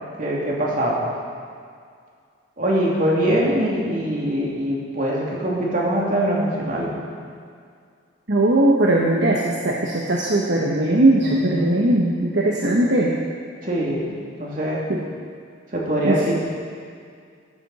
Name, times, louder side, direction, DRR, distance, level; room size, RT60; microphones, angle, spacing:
voice 1, 0.2-1.0 2.6-6.9 11.2-11.8 13.6-14.1 14.4-14.9 15.7-16.4, right 1 dB, 45° right, -5 dB, 2.9 m, -23 dB
voice 2, 8.3-13.1 14.9-15.1 16.0-16.4, right 1 dB, 60° right, -2 dB, 1.2 m, -19 dB
13.5 x 13.0 x 4.3 m, 2.2 s
head